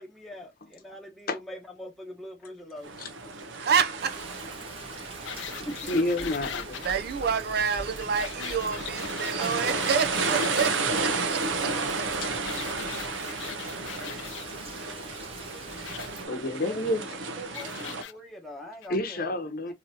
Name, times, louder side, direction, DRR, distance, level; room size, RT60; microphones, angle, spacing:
voice 1, 0.0-2.9 5.3-6.0 14.1-14.8 16.4-19.3, equal, ahead, 1.0 m, -44 dB
sound 1, 2.8-18.0, right 3 dB, 85° right, 0.7 m, -33 dB
voice 2, 3.4-4.5 6.8-12.3, right 6 dB, 55° right, 0.5 m, -29 dB
Rain, 4.0-16.3, right 2 dB, 30° right, 1.4 m, -44 dB
sound 2, 5.2-7.0 8.0-10.7 12.4-14.4 15.8-16.1 17.5-18.1 18.8-18.9, left 11 dB, 75° left, 0.4 m, -40 dB
voice 3, 5.9-6.8 12.7-12.8 16.3-17.1 18.9-19.7, left 1 dB, 55° left, 0.8 m, -28 dB
4.0 x 2.8 x 2.7 m
head